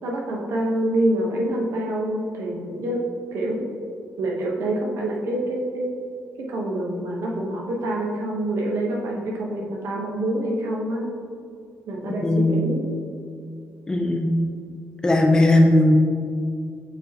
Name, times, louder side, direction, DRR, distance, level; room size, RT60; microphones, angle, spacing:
voice 1, 0.0-3.0 3.3-3.6 4.2-5.9 6.4-11.1 11.9-12.9, right 1 dB, 80° right, -1 dB, 1.0 m, -26 dB
voice 2, 12.2-12.6 13.9-14.3 15.0-16.0, left 1 dB, 15° left, 2 dB, 0.6 m, -17 dB
7.7 x 4.8 x 2.9 m, 2.3 s
wide cardioid pair, 175°, 5 cm